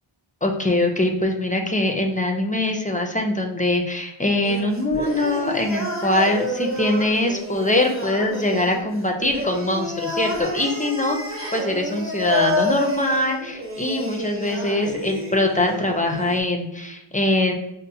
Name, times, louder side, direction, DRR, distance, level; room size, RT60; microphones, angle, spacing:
voice 1, 0.4-17.5, left 1 dB, 15° left, 3 dB, 0.5 m, -23 dB
sound 1, 4.4-16.4, left 1 dB, 25° right, 0.9 m, -29 dB
5.3 x 2.1 x 2.7 m, 0.88 s
wide cardioid pair, 50°, 50 cm